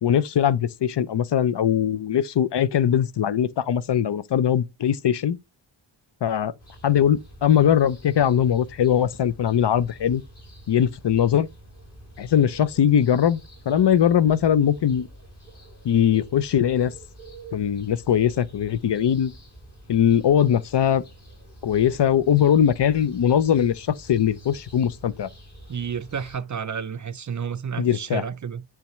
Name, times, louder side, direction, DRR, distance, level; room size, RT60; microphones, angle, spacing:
voice 1, 0.0-5.4 6.2-6.5 6.8-10.2 10.7-11.5 12.2-13.4 13.7-15.1 15.8-16.9 17.5-19.3 19.9-21.0 21.6-25.3 27.8-28.2, left 9 dB, 65° left, 0.6 m, -21 dB
sound 1, 6.6-26.4, right 1 dB, 35° left, 4.4 m, -47 dB
voice 2, 25.7-28.6, right 7 dB, 40° right, 0.4 m, -31 dB
10.0 x 3.5 x 3.0 m
wide cardioid pair, 80°, 46 cm